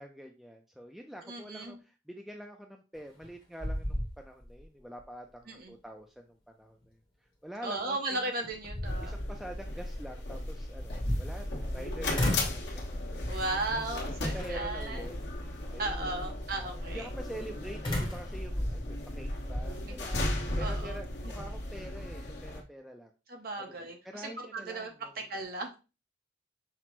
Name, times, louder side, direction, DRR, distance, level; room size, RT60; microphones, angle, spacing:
voice 1, 0.0-8.3 9.0-13.2 14.2-15.1 15.7-16.3 16.9-20.3 20.6-23.1 23.6-23.7 24.0-25.2, right 1 dB, ahead, 2 dB, 0.3 m, -46 dB
voice 2, 1.3-1.8 5.5-5.7 7.6-9.2 13.3-15.0 15.8-17.1 19.8-20.0 20.6-21.0 23.3-25.7, right 2 dB, 50° right, 3 dB, 0.8 m, -36 dB
sound 1, 3.0-3.3 3.6-4.6 5.0-5.1 7.8-7.9 8.4-9.4 10.7-11.8 12.1-12.7 13.2-13.6 14.4-14.8 17.8-19.7, left 1 dB, 25° left, 1.0 m, -33 dB
sound 2, 8.8-22.6, left 1 dB, 60° left, 1.1 m, -36 dB
5.8 x 2.0 x 4.4 m, 0.30 s
head